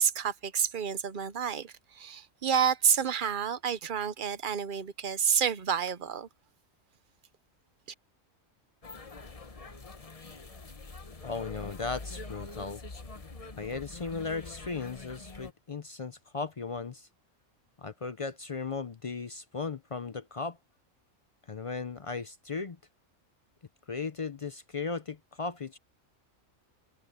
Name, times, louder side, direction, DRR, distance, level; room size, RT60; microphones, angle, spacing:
voice 1, 0.0-6.3, right 7 dB, 45° right, 0.8 m, -29 dB
sound 1, 8.8-15.5, left 3 dB, 30° left, 1.1 m, -45 dB
voice 2, 11.2-12.8 13.6-17.1 17.8-20.6 21.5-22.8 23.9-25.8, left 4 dB, 45° left, 0.4 m, -36 dB
omnidirectional pair, 1.4 m